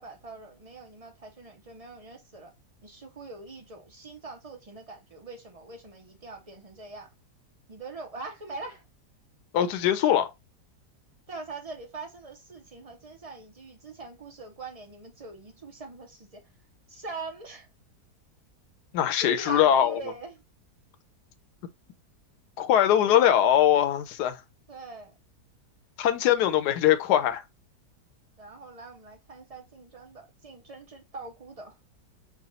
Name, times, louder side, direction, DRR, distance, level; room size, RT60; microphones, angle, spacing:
voice 1, 0.0-2.5 2.8-7.1 7.7-8.8 11.3-16.4 16.9-17.7 19.2-20.4 24.7-25.1 28.4-31.8, right 3 dB, 55° right, 0.4 m, -43 dB
voice 2, 9.5-10.3 18.9-20.0 22.6-24.4 26.0-27.4, left 10 dB, 75° left, 1.2 m, -22 dB
4.9 x 2.3 x 4.0 m
omnidirectional pair, 1.8 m